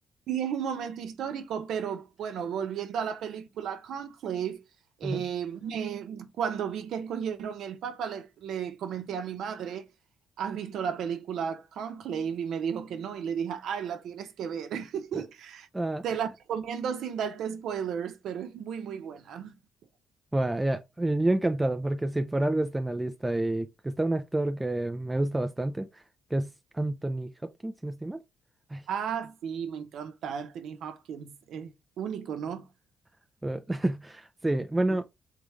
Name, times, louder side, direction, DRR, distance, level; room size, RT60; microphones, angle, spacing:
voice 1, 0.3-4.6 5.0-9.9 10.4-15.7 16.0-19.5 28.9-32.7, right 8 dB, 75° right, 0.8 m, -34 dB
voice 2, 15.7-16.0 20.3-26.0 26.3-27.3 27.6-28.2 28.7-28.8 33.4-35.0, right 1 dB, 15° right, 0.4 m, -29 dB
3.7 x 3.6 x 3.2 m
cardioid pair, 90°, 0 cm